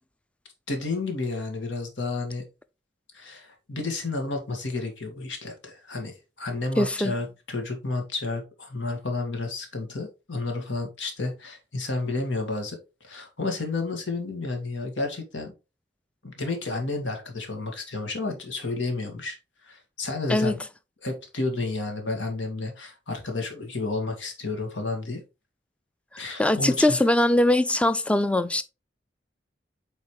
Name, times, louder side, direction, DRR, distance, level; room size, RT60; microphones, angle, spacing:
voice 1, 0.7-2.4 3.1-12.8 13.0-15.5 16.2-19.4 19.6-20.6 21.0-25.2 26.2-27.0, left 3 dB, 85° left, 2.0 m, -31 dB
voice 2, 6.8-7.1 20.3-20.5 26.4-28.6, left 1 dB, 5° left, 0.4 m, -21 dB
8.2 x 4.1 x 3.2 m
head